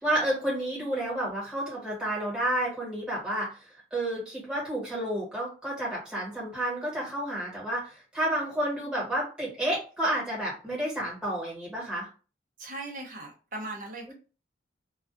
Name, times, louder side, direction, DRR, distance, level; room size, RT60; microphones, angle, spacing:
voice 1, 0.0-12.1 14.1-14.2, right 1 dB, 5° right, -6 dB, 1.3 m, -30 dB
voice 2, 12.6-14.1, right 2 dB, 50° right, 1 dB, 0.7 m, -38 dB
2.3 x 2.2 x 2.5 m, 0.34 s
head